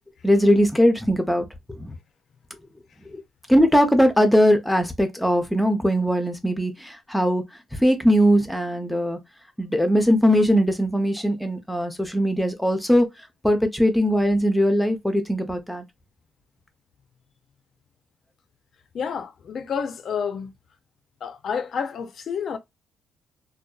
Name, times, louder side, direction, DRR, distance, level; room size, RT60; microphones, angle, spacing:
voice 1, 0.2-2.0 3.1-3.2 3.5-7.4 7.7-9.2 9.6-13.1 13.4-15.8, equal, 5° left, 0.5 m, -20 dB
voice 2, 18.9-20.5 21.2-22.6, left 6 dB, 60° left, 0.4 m, -29 dB
2.6 x 2.2 x 2.3 m
cardioid pair, 90°, 0 cm